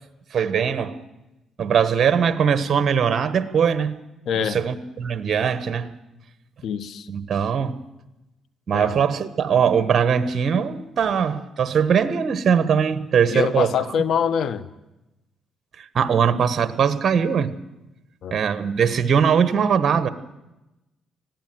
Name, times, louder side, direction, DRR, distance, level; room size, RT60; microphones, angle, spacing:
voice 1, 0.3-1.0 1.6-4.0 4.3-5.9 7.1-7.8 8.7-13.7 15.8-17.5 18.3-20.1, right 7 dB, 50° right, 12 dB, 1.4 m, -21 dB
voice 2, 4.3-4.6 6.6-7.1 8.7-9.0 13.3-14.7 18.2-18.4, left 7 dB, 70° left, 14 dB, 1.2 m, -24 dB
20.0 x 15.0 x 9.4 m, 0.97 s
cardioid pair, 90°, 0 cm